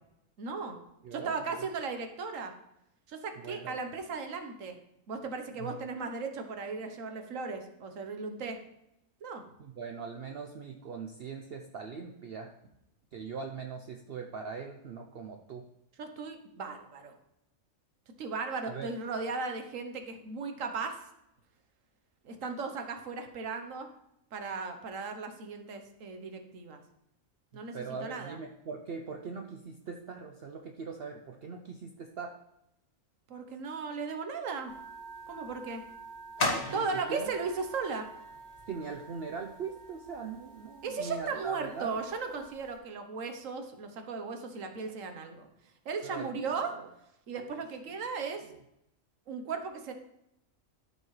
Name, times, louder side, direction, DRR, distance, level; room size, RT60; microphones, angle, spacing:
voice 1, 0.4-0.8 1.1-2.5 3.1-4.8 5.1-8.6 9.2-9.4 16.0-17.1 18.2-21.0 22.2-23.9 24.3-26.8 27.5-28.4 33.3-34.7 35.3-35.8 36.7-38.1 40.8-45.5 45.8-46.7 47.3-48.4 49.3-49.9, right 4 dB, 70° right, 6 dB, 1.4 m, -36 dB
voice 2, 1.0-1.7 3.4-3.8 5.6-5.8 9.6-12.5 13.1-15.6 18.7-18.9 27.5-32.3 36.5-37.3 38.7-42.0 46.0-46.9 47.4-47.6 47.9-48.0 48.4-48.6, right 5 dB, 55° right, 3 dB, 0.8 m, -41 dB
sound 1, 34.7-42.8, left 1 dB, 80° left, 2.0 m, -40 dB
13.0 x 5.3 x 3.2 m, 0.81 s
omnidirectional pair, 1.4 m